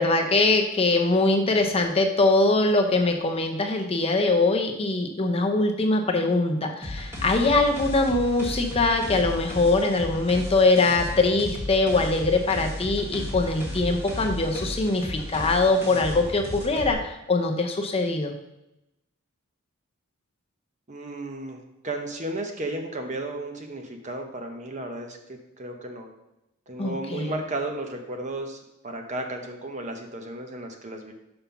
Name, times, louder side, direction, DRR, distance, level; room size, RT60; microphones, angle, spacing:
voice 1, 0.0-18.3 26.8-27.3, left 2 dB, 25° left, 3 dB, 0.7 m, -22 dB
sound 1, 6.8-16.9, left 1 dB, 10° right, 1.6 m, -34 dB
voice 2, 20.9-25.2 25.6-26.1 26.7-31.1, right 2 dB, 35° right, 4 dB, 0.9 m, -34 dB
5.7 x 5.5 x 5.7 m, 0.89 s
head